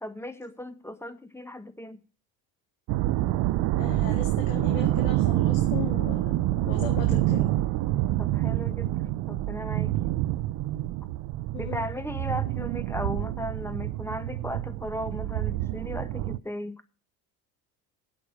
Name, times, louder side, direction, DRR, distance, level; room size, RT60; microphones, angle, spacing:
voice 1, 0.0-2.0 8.2-8.9 9.3-9.9 11.6-16.8, left 1 dB, 5° left, 1.2 m, -36 dB
sound 1, 2.9-16.4, right 15 dB, 60° right, 0.6 m, -27 dB
voice 2, 3.8-6.2 6.7-7.5 11.5-11.8, left 9 dB, 90° left, 2.0 m, -37 dB
8.2 x 6.7 x 8.2 m
supercardioid pair, 85°, 39 cm